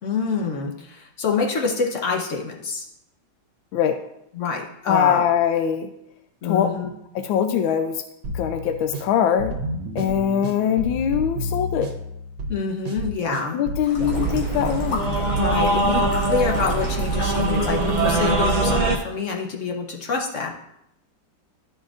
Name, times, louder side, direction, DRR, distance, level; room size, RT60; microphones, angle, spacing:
voice 1, 0.0-2.9 4.3-5.2 6.4-6.9 12.5-13.6 15.3-20.6, left 5 dB, 50° left, 1 dB, 1.0 m, -26 dB
voice 2, 4.9-5.9 6.4-6.7 7.2-8.0 8.3-9.6 9.9-11.9 13.5-15.0, left 9 dB, 85° left, 7 dB, 1.4 m, -22 dB
sound 1, 8.2-13.9, equal, 85° right, 1.7 m, -31 dB
sound 2, 13.8-18.7, left 3 dB, 70° left, 2.0 m, -34 dB
sound 3, 14.0-19.0, right 2 dB, 40° right, 0.7 m, -22 dB
13.0 x 5.2 x 2.5 m, 0.80 s
omnidirectional pair, 2.1 m